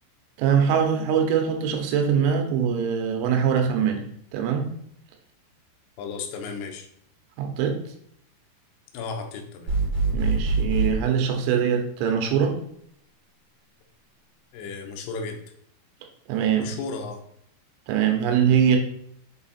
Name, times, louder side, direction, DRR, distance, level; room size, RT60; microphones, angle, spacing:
voice 1, 0.4-4.1 4.3-4.7 7.4-7.8 10.1-12.6 16.3-16.7 17.9-18.8, right 7 dB, 85° right, 4 dB, 3.3 m, -22 dB
voice 2, 6.0-6.9 8.9-9.7 14.5-15.4 16.6-17.2, left 4 dB, 75° left, 3 dB, 2.5 m, -34 dB
sound 1, 9.7-10.9, right 3 dB, 65° right, 1.2 m, -23 dB
7.1 x 4.0 x 4.2 m, 0.69 s
omnidirectional pair, 5.4 m